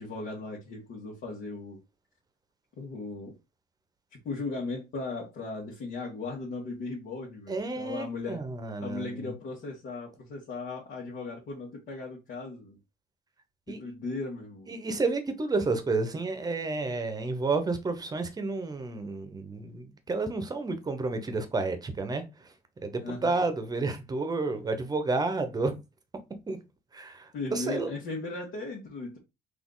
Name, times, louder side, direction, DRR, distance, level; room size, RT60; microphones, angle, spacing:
voice 1, 0.0-1.8 2.8-3.3 4.2-8.4 8.8-12.8 13.7-14.7 23.0-23.3 27.3-29.2, left 3 dB, 60° left, 1.6 m, -37 dB
voice 2, 7.5-9.3 13.7-13.8 14.7-22.5 22.8-25.8 26.5-26.6 26.9-27.9, right 3 dB, 20° right, 0.9 m, -31 dB
4.2 x 2.6 x 3.9 m
cardioid pair, 110°, 17 cm